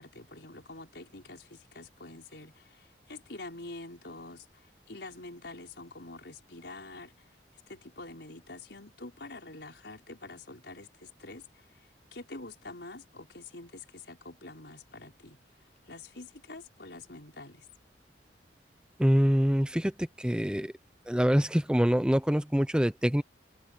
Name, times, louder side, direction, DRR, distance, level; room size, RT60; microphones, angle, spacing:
voice 1, 0.0-4.4 4.9-7.1 7.7-11.4 12.1-15.4 15.9-17.6, left 2 dB, 70° left, 5.1 m, -46 dB
voice 2, 19.0-20.7 21.1-23.2, equal, 5° right, 0.7 m, -25 dB
head